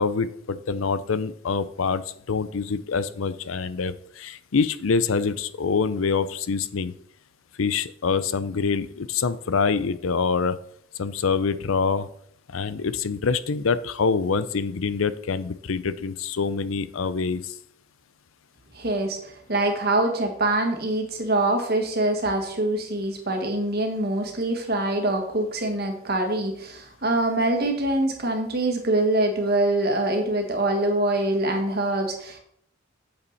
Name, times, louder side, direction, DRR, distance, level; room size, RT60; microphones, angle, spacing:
voice 1, 0.0-6.9 7.6-10.6 11.0-12.1 12.5-17.5, left 5 dB, 80° left, 15 dB, 0.6 m, -25 dB
voice 2, 18.7-32.4, right 2 dB, 50° right, 3 dB, 1.7 m, -24 dB
8.7 x 7.0 x 4.1 m, 0.68 s
head